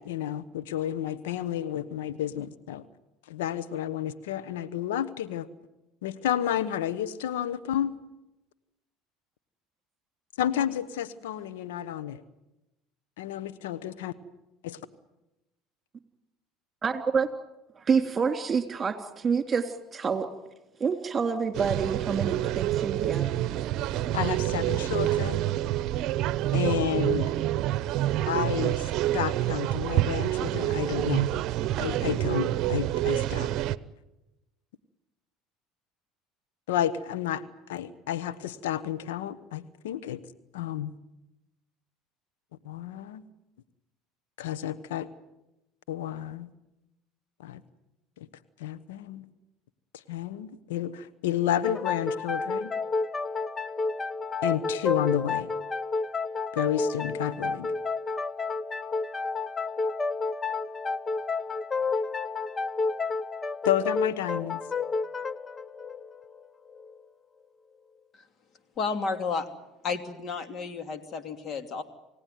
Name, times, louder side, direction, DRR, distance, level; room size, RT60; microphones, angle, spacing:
voice 1, 0.0-2.8 3.3-5.5 6.0-7.9 10.4-12.2 13.2-14.1 14.6-14.8 24.1-25.4 26.5-27.3 28.2-31.3 31.8-33.5 36.7-37.4 37.7-40.2 40.5-40.9 42.6-43.2 44.4-45.1 45.9-46.5 47.4-47.6 48.2-48.3 48.6-49.3 49.9-52.7 54.4-55.5 56.5-57.7 63.6-64.6, left 11 dB, 80° left, 13 dB, 1.1 m, -31 dB
voice 2, 16.8-17.3 17.8-20.3 20.8-23.3, right 5 dB, 30° right, 8 dB, 3.0 m, -27 dB
sound 1, 21.5-33.8, right 13 dB, 60° right, 0.8 m, -27 dB
sound 2, 51.6-67.0, left 4 dB, 25° left, 0.8 m, -31 dB
voice 3, 68.8-69.5 69.8-71.8, left 5 dB, 45° left, 8 dB, 2.8 m, -32 dB
28.5 x 17.0 x 9.4 m, 0.97 s
hypercardioid pair, 80°, 0 cm